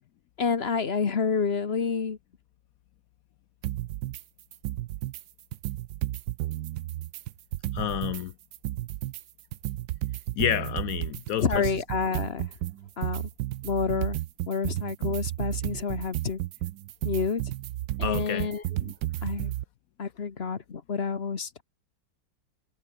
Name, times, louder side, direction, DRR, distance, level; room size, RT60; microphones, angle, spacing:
voice 1, 0.4-2.2 11.4-12.5 13.0-13.3 13.6-14.2 14.5-16.4 17.0-17.4 18.0-18.9 19.2-19.5 20.0-21.6, left 5 dB, 40° left, 1.3 m, -29 dB
sound 1, 3.6-4.2 4.5-5.2 5.5-8.2 8.5-19.6, right 15 dB, 80° right, 1.3 m, -32 dB
voice 2, 7.7-8.3 10.3-11.7 18.0-18.5, left 11 dB, 70° left, 0.8 m, -29 dB
omnidirectional pair, 1.9 m